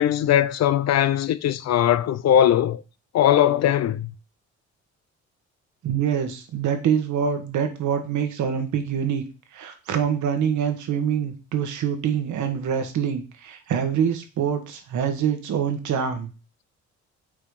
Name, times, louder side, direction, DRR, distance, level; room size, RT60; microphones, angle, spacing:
voice 1, 0.0-2.8 3.1-4.1, left 10 dB, 60° left, 0.6 m, -20 dB
voice 2, 5.8-9.2 9.5-16.3, right 8 dB, 75° right, 1.5 m, -25 dB
5.9 x 4.3 x 4.9 m
cardioid pair, 90°, 30 cm